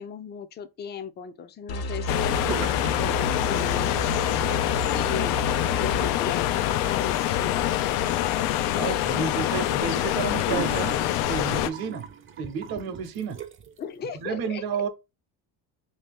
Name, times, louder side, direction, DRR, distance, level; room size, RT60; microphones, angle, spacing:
voice 1, 0.0-4.3 4.9-5.4 5.8-7.8 13.8-14.6, left 7 dB, 25° left, 0.4 m, -37 dB
sound 1, 1.7-6.1, left 1 dB, 60° left, 0.9 m, -32 dB
sound 2, 2.1-11.7, left 12 dB, 80° left, 0.5 m, -25 dB
sound 3, 2.4-3.0 3.3-3.9 4.3-13.8, right 8 dB, 30° right, 0.5 m, -40 dB
voice 2, 8.8-11.0 11.3-12.1 12.4-13.4 14.2-14.9, right 6 dB, 60° right, 0.9 m, -31 dB
3.1 x 2.8 x 3.5 m
cardioid pair, 115°, 41 cm